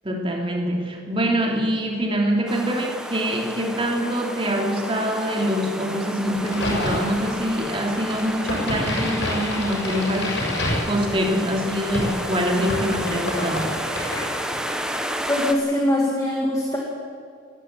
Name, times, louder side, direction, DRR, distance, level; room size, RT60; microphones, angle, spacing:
voice 1, 0.0-13.8, equal, 25° right, 1 dB, 2.9 m, -24 dB
sound 1, 2.5-15.5, equal, 5° right, 1.2 m, -32 dB
Crack, 6.4-14.9, left 1 dB, 60° left, 6.8 m, -29 dB
voice 2, 15.3-16.8, left 1 dB, 15° left, -2 dB, 2.2 m, -22 dB
19.5 x 15.0 x 9.1 m, 2.3 s
head